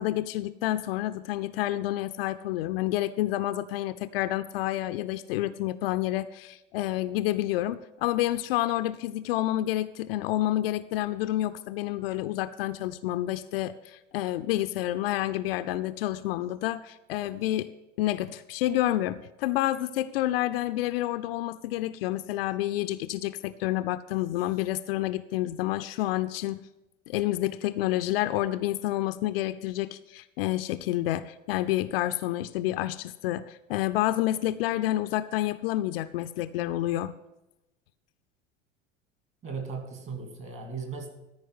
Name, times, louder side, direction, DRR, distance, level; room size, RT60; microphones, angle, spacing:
voice 1, 0.0-17.7 18.0-26.6 27.1-37.1, left 15 dB, 50° left, 11 dB, 0.5 m, -29 dB
voice 2, 39.4-41.1, right 5 dB, 35° right, 5 dB, 2.8 m, -37 dB
13.5 x 4.9 x 7.9 m, 0.98 s
figure-of-eight pair, 75°, 37 cm